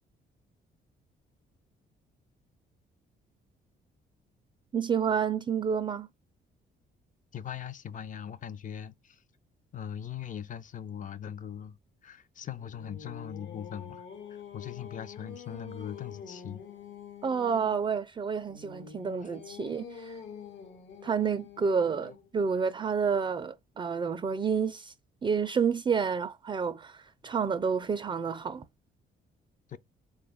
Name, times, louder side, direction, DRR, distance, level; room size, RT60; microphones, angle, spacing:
voice 1, 4.7-6.1 17.2-20.2 21.0-24.9 25.2-28.7, right 6 dB, 25° right, 0.4 m, -29 dB
voice 2, 7.3-9.2 9.7-11.8 12.0-14.0 14.3-16.6 19.2-19.3 29.7-29.8, left 9 dB, 40° left, 0.4 m, -40 dB
Singing, 12.4-17.9 18.5-22.4, left 7 dB, 70° left, 1.1 m, -46 dB
3.8 x 2.3 x 3.4 m
cardioid pair, 90°, 20 cm